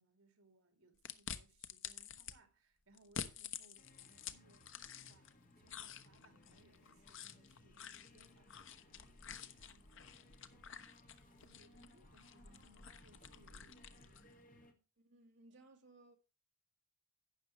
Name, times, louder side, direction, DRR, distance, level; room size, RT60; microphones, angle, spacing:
voice 1, 0.0-4.8 5.1-10.9 11.3-14.8, right 2 dB, 70° right, 2.8 m, -70 dB
sound 1, 1.0-2.3 3.0-5.3 5.7-14.3, left 7 dB, 55° left, 1.0 m, -50 dB
sound 2, 3.8-14.7, left 1 dB, 35° left, 1.8 m, -64 dB
voice 2, 15.0-16.2, right 2 dB, 50° right, 2.0 m, -62 dB
12.0 x 8.9 x 3.1 m
head